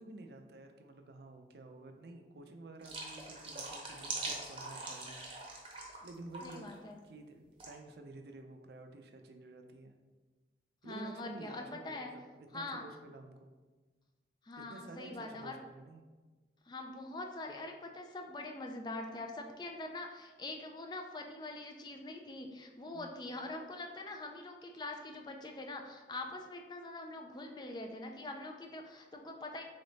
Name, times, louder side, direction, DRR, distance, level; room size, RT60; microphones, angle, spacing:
voice 1, 0.0-6.7 7.0-9.9 10.8-13.5 14.6-16.0 22.9-23.1, right 2 dB, 65° right, 5 dB, 0.5 m, -51 dB
sound 1, 2.8-6.1 6.3-6.7 7.6-7.7, right 2 dB, 30° right, 0.7 m, -42 dB
voice 2, 6.4-7.0 10.8-12.1 12.5-12.8 14.4-15.6 16.7-29.6, left 2 dB, 25° left, 3 dB, 0.3 m, -44 dB
3.8 x 3.4 x 4.0 m, 1.3 s
head